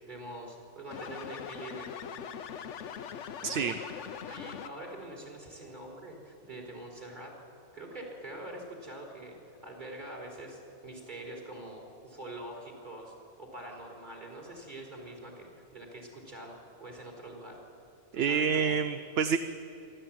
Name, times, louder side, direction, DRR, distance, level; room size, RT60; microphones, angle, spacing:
voice 1, 0.1-1.9 3.4-3.9 4.3-7.3 7.7-17.6 18.1-18.8, right 1 dB, 40° right, 0 dB, 4.0 m, -45 dB
sound 1, 0.9-5.0, left 8 dB, 80° left, 1.1 m, -42 dB
voice 2, 3.4-3.7 4.3-4.4 18.1-19.4, right 6 dB, 65° right, 10 dB, 0.9 m, -28 dB
27.0 x 12.0 x 8.9 m, 2.8 s
omnidirectional pair, 1.2 m